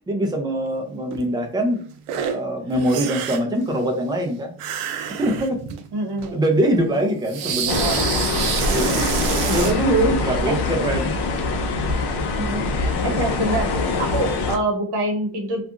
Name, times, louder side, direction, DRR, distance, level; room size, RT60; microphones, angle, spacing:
voice 1, 0.1-4.5 5.2-5.6 6.3-8.1 8.7-9.0 9.5-11.1 13.0-13.2, right 1 dB, 10° right, 3 dB, 0.3 m, -23 dB
sound 1, 1.1-1.2 2.1-2.4 2.7-3.6 4.6-5.8 6.2-6.3 7.3-9.8, right 8 dB, 85° right, 0.6 m, -27 dB
voice 2, 5.9-6.4 7.0-7.1 7.4-8.0 9.5-9.8 10.2-10.6 12.3-15.6, right 2 dB, 50° right, 3 dB, 1.0 m, -27 dB
sound 2, 7.7-14.6, left 3 dB, 55° left, 0.6 m, -23 dB
2.7 x 2.4 x 2.4 m, 0.44 s
cardioid pair, 140°, 50 cm